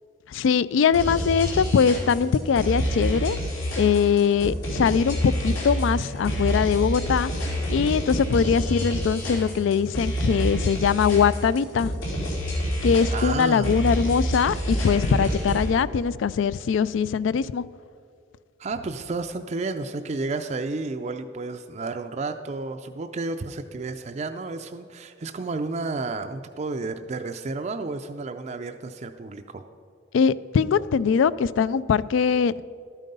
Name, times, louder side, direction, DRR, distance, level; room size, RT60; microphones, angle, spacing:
voice 1, 0.3-3.4 3.8-7.3 7.7-11.9 12.8-17.6 30.1-32.6, left 6 dB, 75° left, 19 dB, 0.3 m, -22 dB
sound 1, 0.9-15.7, equal, 90° left, 3.4 m, -28 dB
voice 2, 13.1-13.7 18.6-29.6, right 3 dB, 35° right, 6 dB, 0.4 m, -31 dB
12.5 x 9.1 x 5.3 m, 2.4 s
head